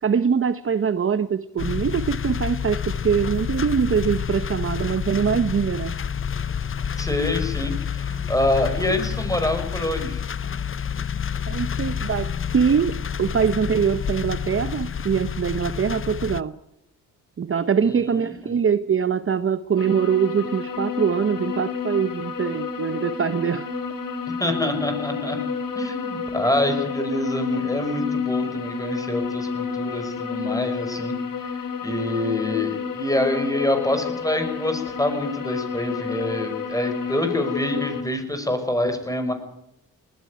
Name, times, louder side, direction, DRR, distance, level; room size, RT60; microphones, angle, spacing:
voice 1, 0.0-6.0 11.5-16.5 17.4-23.7, right 7 dB, 35° right, 0.9 m, -23 dB
sound 1, 1.6-16.4, left 7 dB, 35° left, 0.8 m, -29 dB
voice 2, 7.0-10.2 17.8-18.5 24.4-25.4 25.8-31.1 31.5-39.3, left 1 dB, 10° left, 5.8 m, -26 dB
sound 2, 19.8-38.0, left 6 dB, 65° left, 3.5 m, -30 dB
19.0 x 15.0 x 9.4 m
cardioid pair, 80°, 36 cm